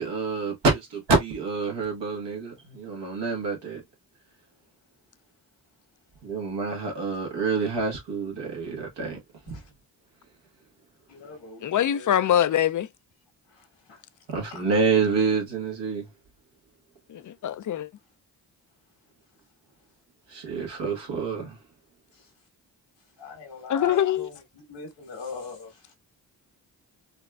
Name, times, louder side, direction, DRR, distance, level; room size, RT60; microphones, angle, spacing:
voice 1, 0.0-3.8 6.2-9.2 14.3-16.1 20.3-21.6, right 4 dB, 75° right, 1.5 m, -27 dB
voice 2, 11.1-12.2 13.5-14.0 14.5-14.6 22.1-22.3 23.2-25.9, left 4 dB, 80° left, 1.5 m, -42 dB
voice 3, 11.6-12.9 17.1-17.9 23.7-24.3, left 10 dB, 45° left, 0.4 m, -23 dB
4.1 x 2.3 x 2.3 m
supercardioid pair, 40°, 43 cm